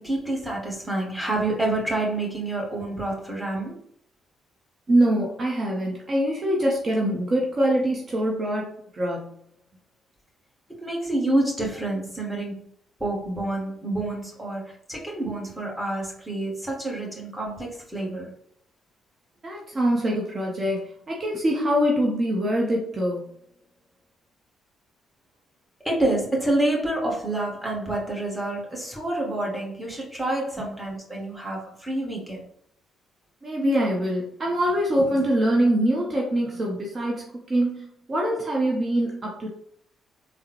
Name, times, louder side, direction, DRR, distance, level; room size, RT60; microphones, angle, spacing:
voice 1, 0.0-3.8 10.7-12.7 13.0-18.3 25.8-32.4, right 1 dB, 5° right, -2 dB, 1.4 m, -28 dB
voice 2, 4.9-9.3 19.4-23.2 33.4-39.5, right 1 dB, 40° right, -2 dB, 0.7 m, -24 dB
3.5 x 2.0 x 2.9 m, 0.66 s
hypercardioid pair, 45°, 0 cm